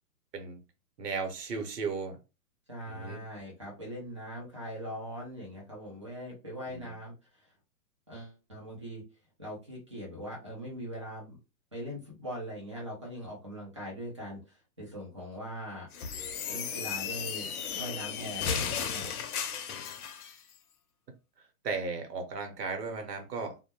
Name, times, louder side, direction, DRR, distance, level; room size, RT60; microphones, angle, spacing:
voice 1, 1.0-2.2 2.9-3.2 6.7-6.9 21.6-23.5, right 4 dB, 90° right, 1.0 m, -35 dB
voice 2, 2.7-7.5 8.1-9.0 9.4-11.4 11.7-16.2 16.5-17.5 17.8-19.1, equal, 20° right, 0.4 m, -41 dB
sound 1, 15.9-20.4, left 7 dB, 65° left, 0.6 m, -35 dB
2.2 x 2.1 x 2.8 m
hypercardioid pair, 155°, 47 cm